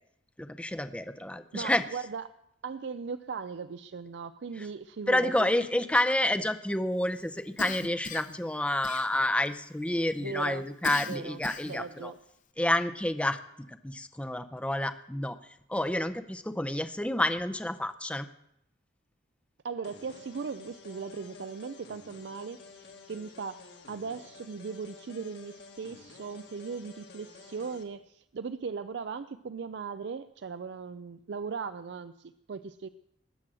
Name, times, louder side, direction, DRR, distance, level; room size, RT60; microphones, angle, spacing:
voice 1, 0.4-1.8 4.6-4.7 5.1-12.1 12.6-15.4 15.7-18.3, left 1 dB, 5° left, 10 dB, 0.6 m, -29 dB
voice 2, 1.5-2.3 2.6-5.5 10.2-10.6 11.1-11.4 11.7-12.2 19.6-22.6 23.1-32.9, right 5 dB, 65° right, 12 dB, 0.4 m, -38 dB
Cough, 7.6-8.4 8.8-9.5 10.8-11.9, left 5 dB, 45° left, 0.8 m, -39 dB
sound 1, 19.8-27.8, left 4 dB, 60° left, 1.7 m, -51 dB
20.0 x 7.6 x 6.2 m, 0.80 s
head